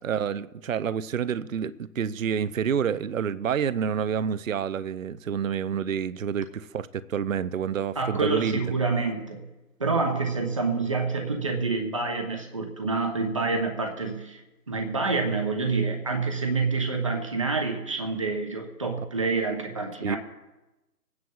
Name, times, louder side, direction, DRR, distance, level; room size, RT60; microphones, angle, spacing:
voice 1, 0.0-8.6 20.0-20.2, right 7 dB, 55° right, 0.5 m, -28 dB
voice 2, 8.0-9.4 9.8-14.4 14.7-20.2, right 4 dB, 20° right, 0.9 m, -27 dB
25.0 x 9.5 x 2.3 m
figure-of-eight pair, 160°, 48 cm